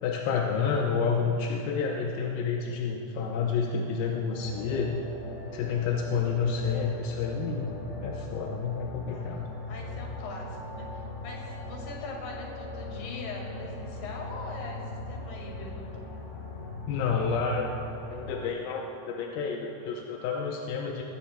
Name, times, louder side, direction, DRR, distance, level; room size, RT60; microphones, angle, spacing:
voice 1, 0.0-5.0 5.5-7.8 8.0-9.4 16.9-17.7 18.1-21.0, left 5 dB, 75° left, 0 dB, 2.2 m, -29 dB
sound 1, 4.3-18.5, left 2 dB, 45° left, 2.0 m, -39 dB
voice 2, 9.7-14.8 15.1-15.9, left 3 dB, 60° left, -1 dB, 3.4 m, -41 dB
20.0 x 16.5 x 2.2 m, 3.0 s
omnidirectional pair, 4.7 m